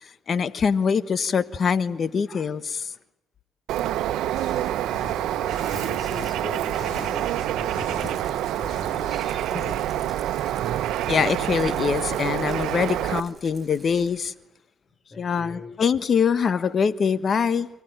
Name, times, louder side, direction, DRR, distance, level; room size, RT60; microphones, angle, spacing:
voice 1, 0.0-2.9 11.1-14.3 15.2-17.7, left 6 dB, 50° left, 1.3 m, -24 dB
Bird, 3.7-13.2, right 12 dB, 85° right, 1.1 m, -27 dB
sound 1, 4.3-6.4 6.7-9.4, left 6 dB, 70° left, 2.6 m, -42 dB
voice 2, 4.3-11.1 14.9-15.8, left 3 dB, 30° left, 4.7 m, -42 dB
Rattle, 8.0-14.2, right 4 dB, 25° right, 5.2 m, -51 dB
28.5 x 17.5 x 9.2 m
cardioid pair, 90°, 0 cm